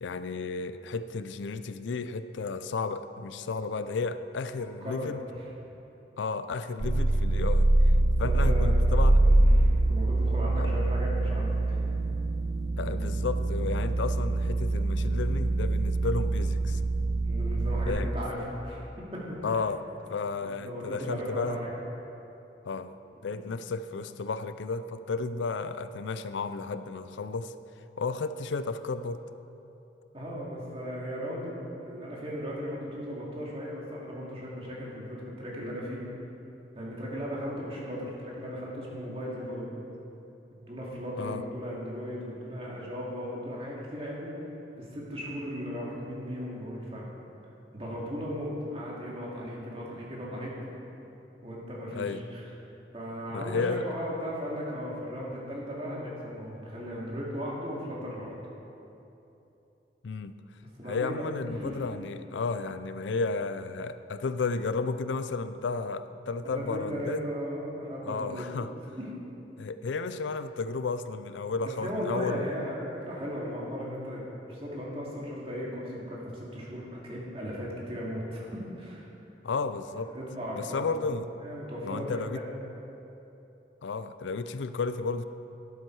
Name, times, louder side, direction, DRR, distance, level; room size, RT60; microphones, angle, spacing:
voice 1, 0.0-5.2 6.2-7.7 8.2-9.2 10.6-10.7 12.8-16.8 17.9-18.1 19.4-19.8 20.1-21.6 22.6-22.9 23.2-27.6 28.0-29.2 41.2-41.4 51.9-52.2 53.3-53.9 60.0-60.3 60.9-67.3 68.0-68.7 69.6-72.5 79.4-80.1 80.5-81.3 81.8-82.4 83.8-85.2, left 4 dB, 85° left, 12 dB, 0.4 m, -33 dB
voice 2, 4.6-5.4 8.0-8.9 9.2-11.9 13.6-13.7 17.2-18.8 19.1-19.5 20.4-21.7 30.1-36.0 36.7-39.8 40.7-44.3 44.8-47.1 47.7-50.5 51.4-52.4 52.9-58.4 60.8-61.8 66.4-68.5 69.0-69.2 71.6-79.1 80.1-80.8 81.4-82.5, equal, 30° right, -5 dB, 2.4 m, -36 dB
sound 1, 6.8-17.9, right 2 dB, 65° right, 0.9 m, -24 dB
12.0 x 10.5 x 4.7 m, 2.9 s
head